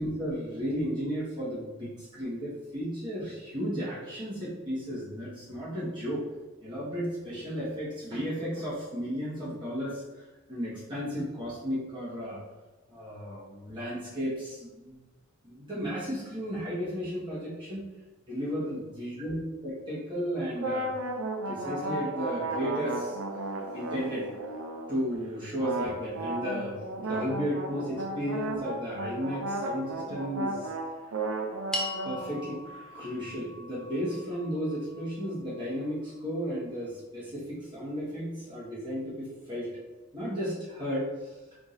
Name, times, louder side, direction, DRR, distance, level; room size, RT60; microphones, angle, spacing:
voice 1, 0.0-6.3 6.6-10.0 10.5-12.4 12.9-15.0 15.4-17.9 18.3-20.9 21.4-23.2 23.7-24.3 24.9-30.7 32.0-39.7 40.1-41.3, equal, 25° right, -10 dB, 1.5 m, -34 dB
sound 1, 20.6-25.0 25.6-32.8, right 2 dB, 75° right, 0.6 m, -34 dB
sound 2, 31.7-36.2, left 1 dB, 5° left, 0.4 m, -40 dB
4.7 x 3.7 x 2.6 m, 1.2 s
head